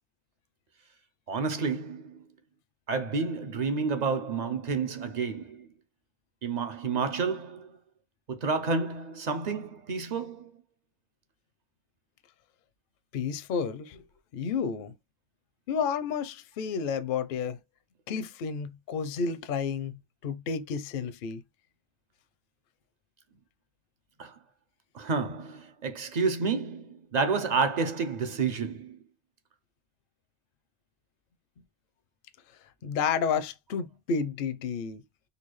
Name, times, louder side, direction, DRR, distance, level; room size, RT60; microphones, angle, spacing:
voice 1, 1.3-2.2 2.9-5.7 6.4-7.8 8.3-10.5 24.2-24.3 24.9-29.0, right 4 dB, 55° right, 0.5 m, -30 dB
voice 2, 13.1-14.0 14.3-14.9 15.7-17.6 18.1-21.4 32.8-35.0, left 6 dB, 60° left, 0.6 m, -31 dB
4.1 x 2.3 x 3.0 m
omnidirectional pair, 1.3 m